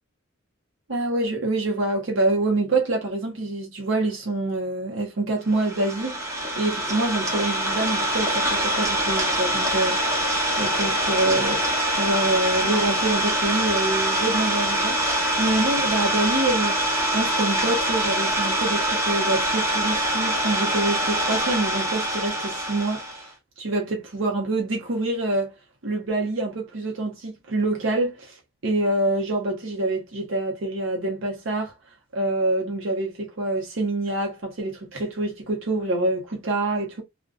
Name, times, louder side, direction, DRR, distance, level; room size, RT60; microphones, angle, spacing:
voice 1, 0.9-10.3 10.5-11.6 12.0-16.9 17.1-23.3 23.6-25.5 25.8-28.4 28.6-31.7 32.1-37.0, right 2 dB, 70° right, 0.7 m, -26 dB
Idling, 5.5-23.3, right 1 dB, 15° right, 0.8 m, -24 dB
2.6 x 2.2 x 2.3 m
head